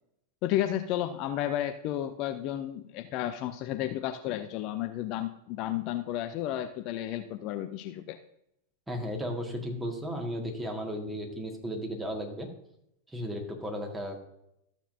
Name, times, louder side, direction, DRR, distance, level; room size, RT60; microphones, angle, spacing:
voice 1, 0.4-8.2, left 12 dB, 40° left, 9 dB, 0.5 m, -32 dB
voice 2, 8.9-12.5 13.1-14.2, equal, 10° right, 2 dB, 1.8 m, -35 dB
13.5 x 7.2 x 2.7 m, 0.80 s
figure-of-eight pair, 90°, 0 cm